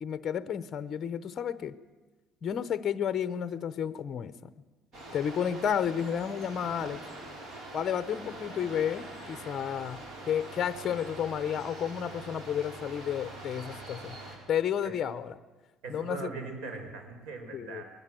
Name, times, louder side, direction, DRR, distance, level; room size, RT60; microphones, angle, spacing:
voice 1, 0.0-1.7 2.4-4.3 5.1-7.0 7.7-14.2 14.5-15.4 15.9-16.3 17.5-17.8, left 8 dB, 35° left, 13 dB, 0.9 m, -31 dB
sound 1, 4.9-14.4, right 2 dB, 45° right, 6.5 m, -44 dB
voice 2, 15.8-17.9, right 3 dB, 80° right, 5 dB, 5.4 m, -40 dB
21.0 x 20.5 x 7.7 m, 1.2 s
cardioid pair, 150°, 0 cm